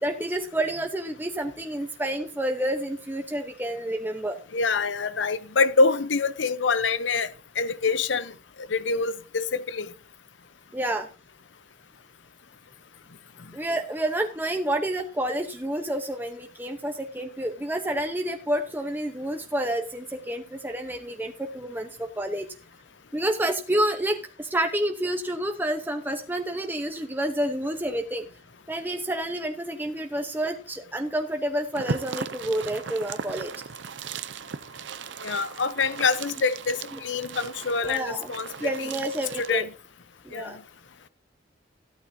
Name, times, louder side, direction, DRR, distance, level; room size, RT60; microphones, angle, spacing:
voice 1, 0.0-4.4 10.7-11.1 13.5-22.5 23.1-28.3 28.7-33.5 37.3-37.5 37.8-38.3 38.6-39.7 40.2-40.6, right 1 dB, 10° right, 0.9 m, -29 dB
voice 2, 4.5-8.3 8.7-9.9 35.2-38.9 39.4-39.7 40.3-40.6, left 4 dB, 85° left, 0.8 m, -26 dB
sound 1, 31.7-39.6, right 5 dB, 80° right, 0.6 m, -37 dB
14.0 x 12.0 x 2.8 m
head